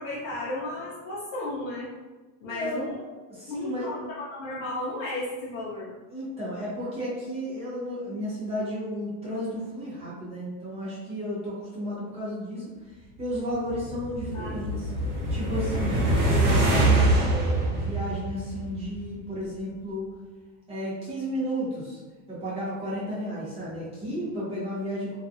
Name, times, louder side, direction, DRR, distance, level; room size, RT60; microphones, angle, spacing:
voice 1, 0.0-1.9 2.4-3.0 3.5-5.9 14.3-14.8, left 2 dB, 60° left, -7 dB, 0.7 m, -34 dB
voice 2, 2.5-2.8 3.3-3.9 6.1-12.7 13.2-14.9 15.3-20.1 20.7-22.0 22.3-25.2, equal, 15° right, -8 dB, 0.6 m, -33 dB
sound 1, 13.5-19.0, right 2 dB, 45° right, 1.0 m, -24 dB
2.5 x 2.3 x 2.5 m, 1.3 s
supercardioid pair, 165°, 43 cm